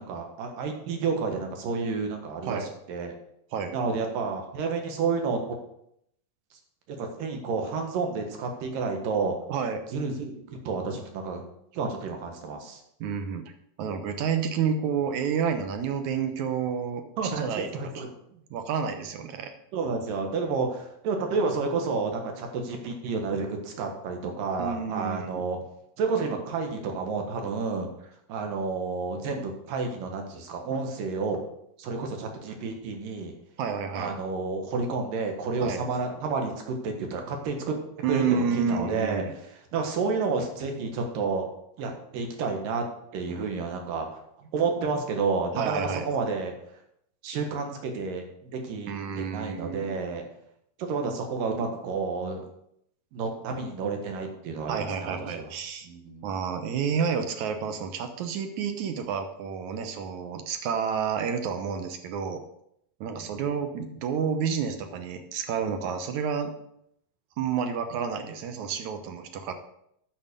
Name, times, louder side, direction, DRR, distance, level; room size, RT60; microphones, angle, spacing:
voice 1, 0.0-3.1 3.7-5.6 6.9-9.3 9.9-11.4 11.7-12.8 17.2-18.1 19.7-25.6 26.0-27.9 28.3-31.4 31.8-33.3 33.9-37.7 38.1-39.2 39.7-41.5 41.8-42.8 43.1-44.1 44.5-46.5 47.2-48.3 48.5-50.2 50.8-52.4 53.1-55.5 55.8-56.3 63.2-63.4, right 4 dB, 85° right, 3 dB, 3.3 m, -30 dB
voice 2, 9.5-9.8 13.0-13.5 13.8-17.7 18.0-18.1 18.5-19.5 24.6-25.4 33.6-34.1 35.6-35.8 38.0-39.3 45.6-46.1 48.9-50.2 54.7-55.9 56.2-62.4 63.0-66.5 67.4-69.5, right 6 dB, 70° right, 7 dB, 2.2 m, -30 dB
9.3 x 6.7 x 6.8 m, 0.74 s
omnidirectional pair, 3.8 m